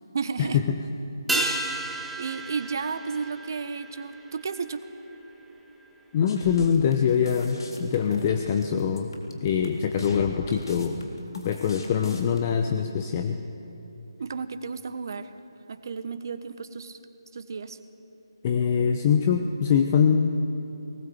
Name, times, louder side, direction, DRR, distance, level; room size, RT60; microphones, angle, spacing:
voice 1, 0.1-0.6 1.3-4.8 14.2-15.3 15.7-17.0 17.3-17.8, right 5 dB, 50° right, 10 dB, 1.2 m, -33 dB
sound 1, 1.3-6.0 6.3-6.4, right 2 dB, ahead, 1.0 m, -33 dB
voice 2, 6.1-9.1 9.4-11.0 11.3-13.4 18.4-20.4, left 7 dB, 30° left, 6 dB, 0.9 m, -23 dB
sound 2, 6.3-12.4, left 2 dB, 60° left, 3.6 m, -40 dB
19.5 x 19.0 x 8.0 m, 3.0 s
figure-of-eight pair, 155°, 3 cm